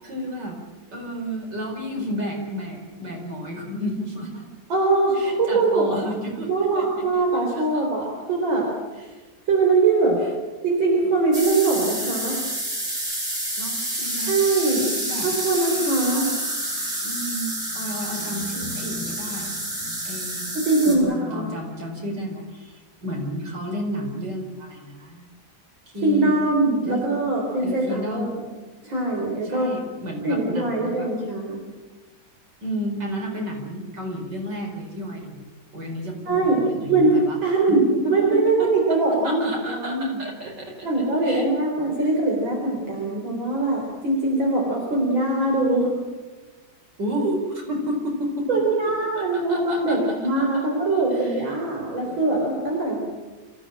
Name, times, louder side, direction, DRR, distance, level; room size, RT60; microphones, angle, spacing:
voice 1, 0.0-0.6 0.9-4.4 5.1-7.1 7.5-7.9 9.1-9.2 13.6-14.3 14.7-15.3 16.0-16.4 17.0-19.5 20.1-25.3 25.9-26.4 26.9-27.1 27.6-28.5 29.4-31.1 32.6-37.4 37.7-38.3 38.6-39.0 39.2-40.9 41.2-41.5 47.0-48.6 49.1-50.4 50.8-51.4, equal, 65° right, 1 dB, 5.4 m, -32 dB
voice 2, 4.7-6.0 6.5-8.7 9.5-10.2 10.6-12.4 14.3-14.9 15.2-16.3 20.5-21.5 26.0-28.3 28.8-29.7 30.2-31.6 36.3-36.6 36.9-37.8 38.1-40.2 40.8-46.0 48.5-53.0, right 3 dB, 85° right, -1 dB, 4.8 m, -22 dB
sound 1, 11.3-21.0, right 1 dB, 40° right, 6.2 m, -29 dB
26.5 x 16.0 x 8.8 m, 1.3 s
omnidirectional pair, 2.1 m